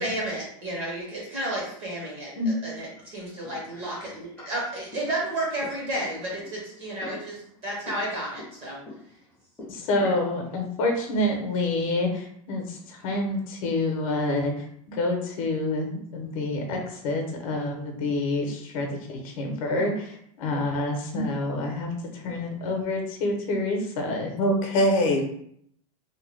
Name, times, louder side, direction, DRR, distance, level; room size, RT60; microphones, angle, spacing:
voice 1, 0.0-7.2 7.6-8.8, right 1 dB, 30° right, -4 dB, 0.7 m, -32 dB
voice 2, 3.4-4.5 7.0-7.2 7.9-8.0 8.4-8.5 8.9-10.2 12.8-13.4 16.2-16.8 21.7-22.5, left 2 dB, 10° left, -6 dB, 0.5 m, -46 dB
voice 3, 9.9-12.6 13.0-14.5 14.9-16.8 17.0-20.1 20.4-21.9 22.2-25.2, left 1 dB, 60° left, 3 dB, 0.7 m, -26 dB
2.7 x 2.1 x 3.1 m, 0.69 s
supercardioid pair, 175°, 19 cm